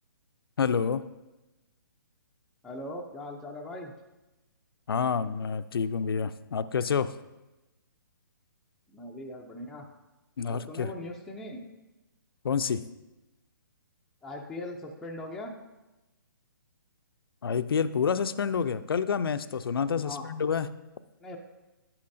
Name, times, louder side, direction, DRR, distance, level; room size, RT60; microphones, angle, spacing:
voice 1, 0.6-1.0 4.9-7.1 10.4-10.9 12.4-12.8 17.4-20.7, left 6 dB, 80° left, 13 dB, 0.5 m, -28 dB
voice 2, 2.6-3.9 8.9-9.9 10.5-11.6 14.2-15.5 20.0-20.3 21.2-21.5, left 1 dB, ahead, -2 dB, 0.4 m, -40 dB
11.0 x 8.6 x 2.6 m, 1.0 s
hypercardioid pair, 155°, 12 cm